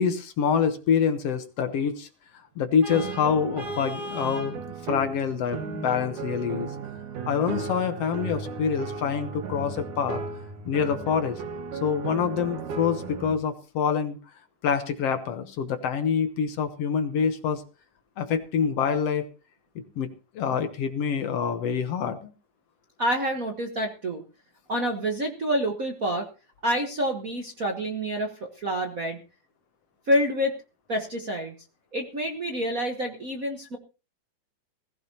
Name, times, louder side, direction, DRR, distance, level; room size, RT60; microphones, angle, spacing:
voice 1, 0.0-2.1 2.6-4.6 4.9-6.7 7.3-10.2 10.7-11.4 11.8-14.2 14.6-17.6 18.2-19.2 19.8-20.1 20.4-22.3, left 7 dB, 60° left, 8 dB, 1.8 m, -26 dB
Vehicle horn car horn honking, 2.8-4.6, equal, 15° right, 6.2 m, -37 dB
sound 1, 2.9-13.3, right 5 dB, 75° right, 2.8 m, -35 dB
voice 2, 23.0-24.2 24.7-26.3 26.6-28.3 28.6-29.2 30.1-30.5 30.9-31.5 31.9-33.8, equal, 50° right, 3 dB, 1.0 m, -27 dB
18.5 x 15.5 x 2.9 m, 0.33 s
omnidirectional pair, 3.6 m